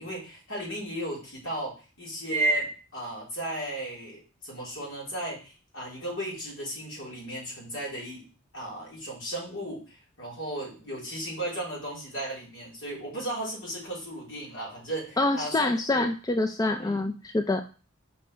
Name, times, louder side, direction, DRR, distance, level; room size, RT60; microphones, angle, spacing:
voice 1, 0.0-8.2 8.5-16.1 16.7-17.1, right 1 dB, 65° left, -5 dB, 3.9 m, -34 dB
voice 2, 15.2-17.6, left 2 dB, 20° left, 6 dB, 0.4 m, -26 dB
5.4 x 4.7 x 4.9 m, 0.35 s
head